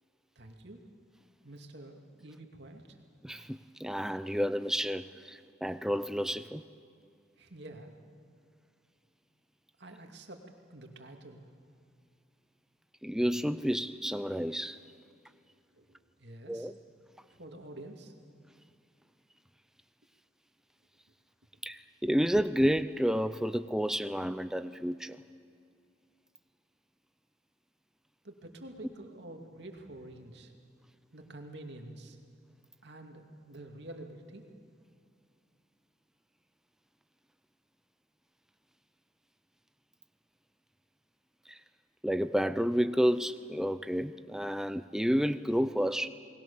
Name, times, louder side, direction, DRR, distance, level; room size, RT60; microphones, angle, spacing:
voice 1, 0.4-0.8 1.4-3.0 7.3-7.9 9.8-10.4 10.7-11.4 15.8-16.7 17.3-18.1 28.2-30.5 31.1-32.2 32.8-34.4, right 1 dB, 60° right, 2.5 m, -48 dB
voice 2, 3.2-6.6 13.0-14.8 16.5-16.7 21.6-25.2 41.5-41.6 42.0-46.1, equal, 5° right, 0.5 m, -30 dB
29.5 x 20.5 x 7.0 m
head